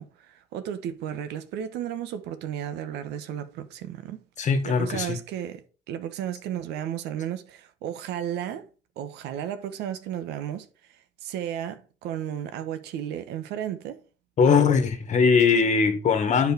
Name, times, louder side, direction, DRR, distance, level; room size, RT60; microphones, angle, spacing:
voice 1, 0.0-5.6 5.9-8.7 9.0-14.0, right 10 dB, 85° right, 1.1 m, -34 dB
voice 2, 4.4-5.2 14.4-16.5, left 5 dB, 45° left, 1.7 m, -21 dB
8.0 x 4.7 x 4.6 m
cardioid pair, 110°, 17 cm